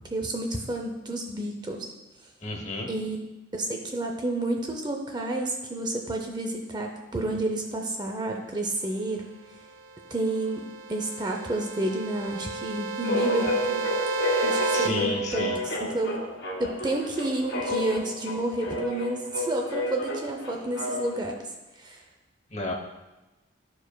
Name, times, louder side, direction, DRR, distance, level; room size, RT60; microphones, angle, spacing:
voice 1, 0.1-1.9 2.9-3.2 3.5-9.2 10.1-13.8 14.4-15.5 15.8-16.2 16.6-21.4 21.8-22.0, right 1 dB, 20° right, 2 dB, 0.5 m, -30 dB
voice 2, 2.4-2.9 14.7-15.6 22.5-22.7, left 2 dB, 35° left, 2 dB, 0.9 m, -31 dB
sound 1, 9.9-14.9, right 3 dB, 90° right, 0.8 m, -32 dB
sound 2, 13.0-21.3, left 1 dB, 65° left, 1.6 m, -30 dB
12.5 x 4.7 x 2.2 m, 1.1 s
head